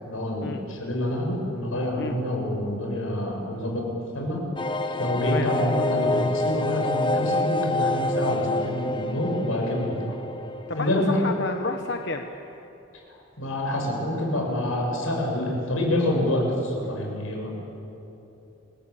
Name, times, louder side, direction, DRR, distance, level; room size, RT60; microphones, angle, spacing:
voice 1, 0.0-3.9 4.1-4.4 5.0-10.2 10.7-11.2 13.4-17.5, left 1 dB, 90° left, 0 dB, 7.5 m, -27 dB
sound 1, 4.6-12.0 12.3-12.4 12.7-12.8, left 2 dB, 25° left, 0.9 m, -28 dB
voice 2, 10.7-12.3, left 3 dB, 55° left, 5 dB, 1.1 m, -30 dB
28.5 x 21.0 x 8.6 m, 2.9 s
head